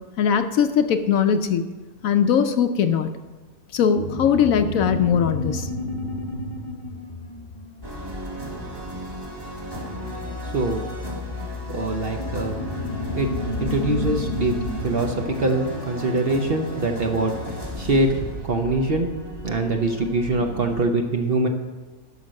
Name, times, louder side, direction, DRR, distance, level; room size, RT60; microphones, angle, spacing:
voice 1, 0.2-1.6 2.0-3.1 3.7-5.7, left 7 dB, 70° left, 9 dB, 1.0 m, -20 dB
sound 1, 3.8-8.7 12.1-17.0, left 2 dB, 35° left, 1.0 m, -32 dB
sound 2, 7.8-20.8, equal, 15° right, 1.5 m, -34 dB
voice 2, 11.7-12.6 13.2-13.3 13.6-14.5 14.8-17.3 17.8-19.1 19.4-21.5, right 2 dB, 45° right, 4 dB, 0.9 m, -23 dB
11.0 x 6.5 x 6.4 m, 1.2 s
omnidirectional pair, 1.6 m